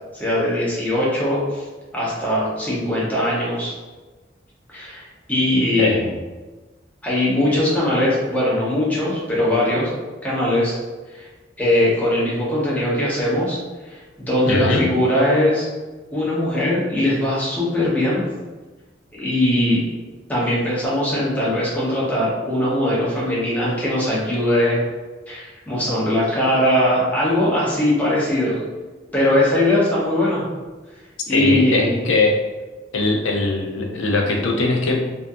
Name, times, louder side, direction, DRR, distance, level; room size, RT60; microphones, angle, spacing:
voice 1, 0.1-1.6 1.9-3.7 4.7-6.0 7.0-9.9 10.2-10.8 11.1-11.3 11.6-13.6 13.8-15.7 16.1-18.2 19.2-19.8 20.3-24.8 25.3-28.6 29.1-30.4 31.3-32.0, left 1 dB, 10° left, -7 dB, 0.6 m, -20 dB
voice 2, 5.8-6.2 14.5-14.9 31.3-32.4 32.9-35.0, left 2 dB, 90° left, 1 dB, 0.4 m, -20 dB
2.6 x 2.4 x 2.3 m, 1.3 s
head